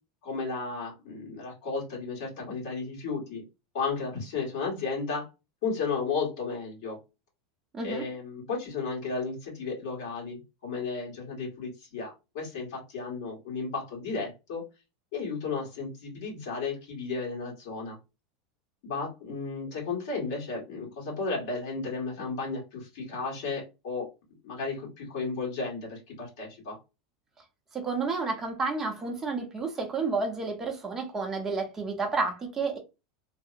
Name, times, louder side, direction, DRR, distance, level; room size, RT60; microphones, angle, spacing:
voice 1, 0.2-3.4 3.7-5.3 5.6-7.0 7.8-14.6 15.1-18.0 18.8-24.1 24.4-26.8, left 4 dB, 60° left, 1.5 m, -34 dB
voice 2, 27.7-32.8, right 4 dB, 15° right, 0.7 m, -30 dB
2.8 x 2.0 x 2.5 m
supercardioid pair, 155°, 3 cm